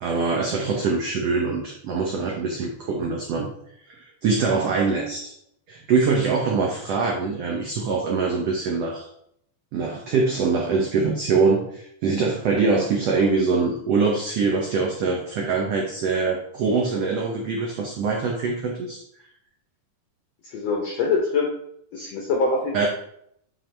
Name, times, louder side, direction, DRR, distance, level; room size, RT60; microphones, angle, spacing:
voice 1, 0.0-3.5 3.9-4.0 4.2-5.3 5.7-9.1 9.7-19.0 22.7-22.9, right 4 dB, 80° right, -1 dB, 1.4 m, -23 dB
voice 2, 20.5-21.5 21.9-22.9, left 4 dB, 75° left, 0 dB, 1.5 m, -24 dB
7.4 x 5.3 x 3.3 m, 0.72 s
omnidirectional pair, 4.1 m